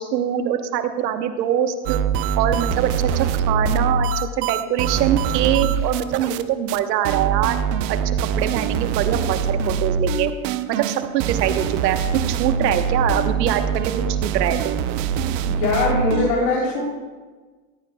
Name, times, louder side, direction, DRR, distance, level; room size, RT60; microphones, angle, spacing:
voice 1, 0.0-2.0 2.4-4.1 4.4-7.6 7.9-10.3 10.7-13.9 14.2-14.8, right 10 dB, 90° right, 8 dB, 1.2 m, -23 dB
sound 1, 1.9-6.4 6.7-6.8 7.1-16.3, right 6 dB, 70° right, 0.8 m, -23 dB
voice 2, 15.4-16.9, left 2 dB, 75° left, -3 dB, 3.6 m, -21 dB
18.5 x 14.5 x 2.3 m, 1.4 s
supercardioid pair, 95°, 48 cm